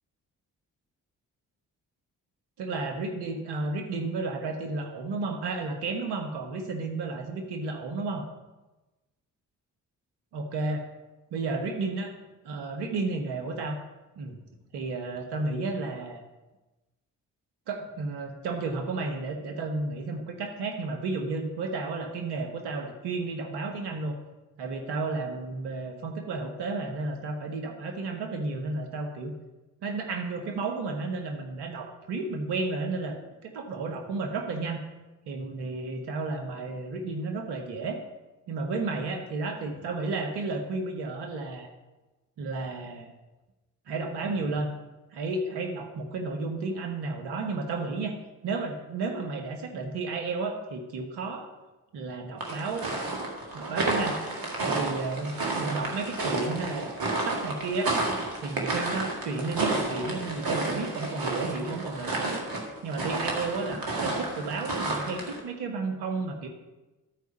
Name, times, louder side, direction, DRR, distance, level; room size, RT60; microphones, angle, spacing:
voice 1, 2.6-8.2 10.3-10.9 11.3-12.1 12.4-13.8 14.2-14.4 14.7-16.2 17.7-24.2 24.6-29.3 29.8-33.2 33.4-34.8 35.3-38.0 38.5-41.7 42.4-43.1 43.9-44.7 45.1-48.1 48.4-51.5 51.9-52.9 53.5-54.2 54.6-57.9 58.4-62.4 62.8-66.5, right 3 dB, 80° right, 5 dB, 1.1 m, -32 dB
sound 1, 52.4-65.4, right 2 dB, 60° right, 2.0 m, -31 dB
12.0 x 4.7 x 5.4 m, 1.1 s
hypercardioid pair, 40°, 40 cm